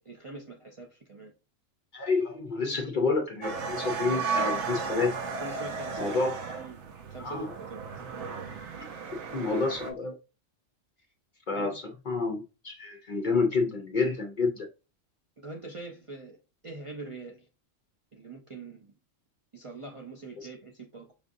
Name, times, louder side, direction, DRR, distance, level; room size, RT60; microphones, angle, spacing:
voice 1, 0.0-1.3 5.4-6.2 6.6-6.8 7.1-7.9 11.0-11.1 11.5-11.8 15.4-16.4 16.6-17.5 18.1-18.9 19.5-21.1, right 2 dB, 50° right, 0.4 m, -43 dB
voice 2, 1.9-5.2 6.0-6.3 7.2-7.5 8.3-8.4 9.3-10.2 11.5-14.7 20.4-20.5, left 4 dB, 50° left, 0.6 m, -29 dB
sound 1, 3.4-9.9, right 5 dB, 65° right, 0.9 m, -34 dB
5.0 x 2.5 x 2.5 m
omnidirectional pair, 1.3 m